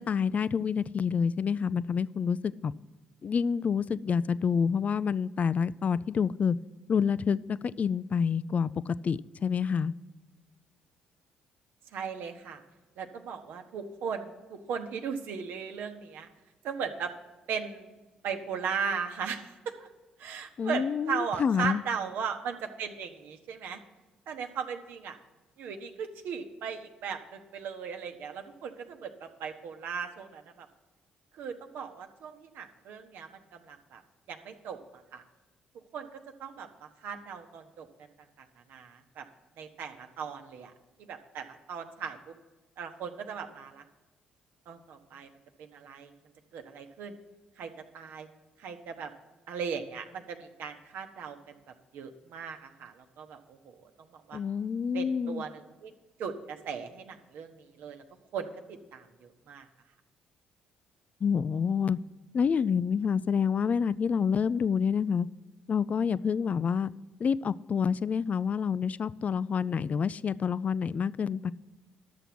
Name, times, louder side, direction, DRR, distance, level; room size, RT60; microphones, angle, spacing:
voice 1, 0.0-2.7 3.2-6.6 6.9-9.9 20.6-21.8 54.3-55.4 61.2-62.0 62.3-65.3 65.7-66.9 67.2-71.5, left 6 dB, 45° left, 0.3 m, -28 dB
voice 2, 11.9-12.6 13.0-16.3 16.6-17.1 17.5-18.0 18.2-19.9 20.2-23.8 24.3-25.2 25.6-30.7 31.3-34.0 34.3-35.2 35.9-38.1 38.4-39.2 39.6-40.7 41.0-42.2 42.8-43.8 44.7-45.3 45.6-46.1 46.5-47.1 47.6-48.3 48.6-49.1 49.5-51.6 51.9-54.4 54.9-55.9 56.2-58.0 58.3-59.7, right 6 dB, 65° right, 0.9 m, -38 dB
11.5 x 6.9 x 5.9 m
hypercardioid pair, 50°, 4 cm